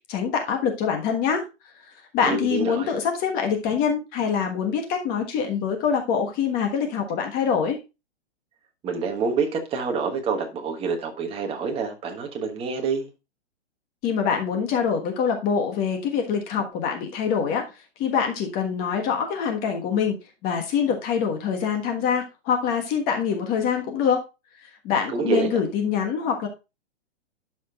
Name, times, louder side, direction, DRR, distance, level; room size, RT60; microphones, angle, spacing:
voice 1, 0.1-1.4 2.1-7.8 14.0-17.6 18.0-20.1 20.4-24.2 24.6-26.5, left 7 dB, 25° left, 1.4 m, -24 dB
voice 2, 2.2-2.9 8.8-13.1 25.1-25.6, right 5 dB, 15° right, 1.3 m, -27 dB
12.0 x 5.2 x 2.4 m
hypercardioid pair, 150°, 34 cm